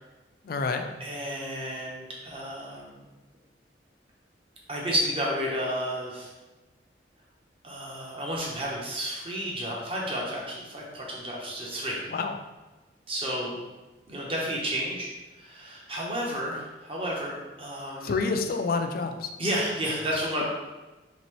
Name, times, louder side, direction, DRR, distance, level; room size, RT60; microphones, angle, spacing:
voice 1, 0.4-0.8 12.1-12.3 18.0-19.3, left 4 dB, 55° left, 5 dB, 0.4 m, -28 dB
voice 2, 1.0-3.1 4.7-6.3 7.6-12.0 13.1-13.6 14.1-15.1 15.4-18.1 19.4-20.4, equal, 30° right, -3 dB, 0.9 m, -31 dB
4.0 x 3.3 x 3.2 m, 1.1 s
head